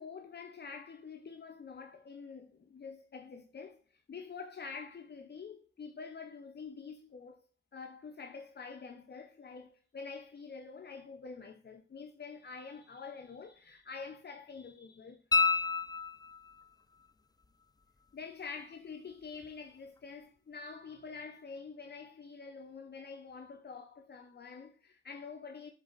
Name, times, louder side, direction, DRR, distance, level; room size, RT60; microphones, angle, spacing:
voice 1, 0.0-7.4 7.7-15.2 18.1-25.7, left 5 dB, 55° left, 0.7 m, -47 dB
sound 1, 15.3-16.6 19.4-19.5, left 4 dB, 20° left, 0.4 m, -29 dB
7.5 x 4.0 x 3.9 m
wide cardioid pair, 85°, 21 cm